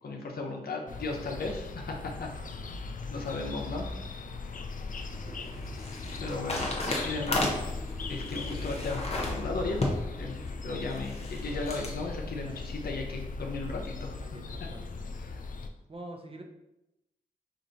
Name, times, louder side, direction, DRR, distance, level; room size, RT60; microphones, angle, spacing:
voice 1, 0.0-2.3 3.1-3.9 6.2-6.7 7.0-7.5 8.1-9.9 10.2-10.3 10.6-14.1 15.2-15.4, left 3 dB, 75° left, 1 dB, 0.9 m, -35 dB
sound 1, 0.9-15.7, left 3 dB, 55° left, 0.5 m, -39 dB
sound 2, 4.7-12.0, left 2 dB, 40° left, 1.0 m, -35 dB
voice 2, 5.2-5.5 12.4-12.7 14.2-15.2 15.9-16.4, right 2 dB, 35° right, 3 dB, 0.8 m, -47 dB
5.0 x 2.6 x 4.0 m, 0.90 s
cardioid pair, 55°, 16 cm